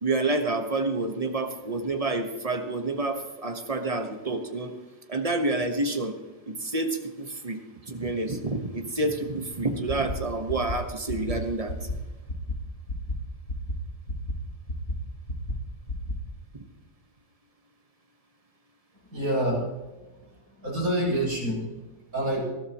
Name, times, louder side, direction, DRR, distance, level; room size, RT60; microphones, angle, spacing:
voice 1, 0.0-4.7 5.1-6.1 6.5-11.9, right 2 dB, 25° right, 5 dB, 1.1 m, -28 dB
sound 1, 9.5-9.6 9.9-10.2 10.5-10.8 11.1-11.4 11.7-12.0 12.3-12.6 12.9-13.2 13.5-13.8 14.1-14.3 14.7-15.0 15.3-15.5 15.9-16.2, left 1 dB, 45° left, 1.8 m, -31 dB
voice 2, 19.1-19.7 20.6-21.8 22.1-22.4, right 1 dB, 50° right, -5 dB, 6.8 m, -27 dB
20.0 x 13.5 x 3.0 m, 1.1 s
omnidirectional pair, 1.9 m